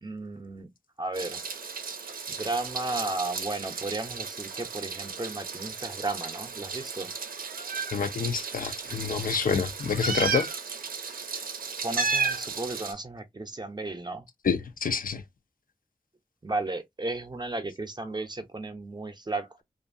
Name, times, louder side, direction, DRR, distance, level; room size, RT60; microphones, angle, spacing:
voice 1, 0.0-0.7 1.0-1.4 2.4-7.1 11.8-14.2 16.4-19.6, right 2 dB, 30° right, 0.6 m, -34 dB
Meow, 1.1-12.9, right 5 dB, 85° right, 0.5 m, -34 dB
voice 2, 7.9-10.5 14.4-15.2, left 6 dB, 75° left, 0.5 m, -28 dB
2.6 x 2.5 x 2.4 m
wide cardioid pair, 95°, 15 cm